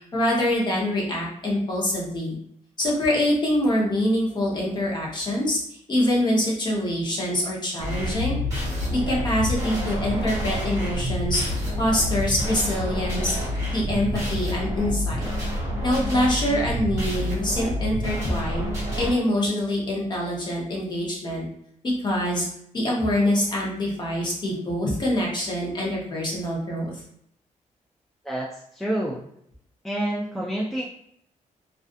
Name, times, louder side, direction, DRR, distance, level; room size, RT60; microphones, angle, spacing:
voice 1, 0.1-2.4 2.8-8.4 8.9-11.4 11.8-13.4 13.7-15.3 15.8-18.7 19.0-21.4 21.8-22.5 22.7-27.0, left 1 dB, 35° left, -3 dB, 0.8 m, -25 dB
sound 1, 7.8-19.1, left 1 dB, 25° right, 1.2 m, -28 dB
voice 2, 28.2-29.3 29.8-30.8, right 1 dB, ahead, -3 dB, 0.3 m, -28 dB
2.4 x 2.4 x 2.4 m, 0.71 s
cardioid pair, 135°, 13 cm